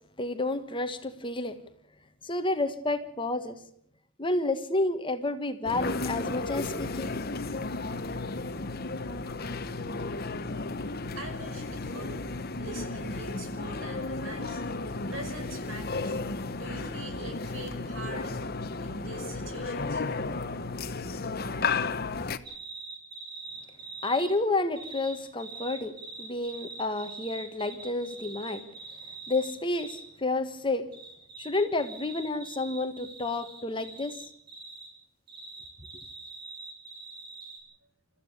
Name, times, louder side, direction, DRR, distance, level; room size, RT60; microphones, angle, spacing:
voice 1, 0.2-1.6 2.2-3.6 4.2-7.1 24.0-28.6 29.3-30.9 31.4-34.2, left 2 dB, 25° left, 9 dB, 1.5 m, -30 dB
sound 1, 5.6-22.4, left 3 dB, 50° left, 1.1 m, -33 dB
voice 2, 11.2-12.2 12.6-14.7 15.1-16.2 16.6-18.3 18.8-20.0, right 2 dB, 80° right, 5 dB, 5.6 m, -42 dB
sound 2, 22.4-24.3 24.8-30.0 30.9-34.9 35.3-37.6, right 3 dB, 55° right, 6.9 m, -44 dB
29.0 x 14.5 x 6.7 m, 0.67 s
head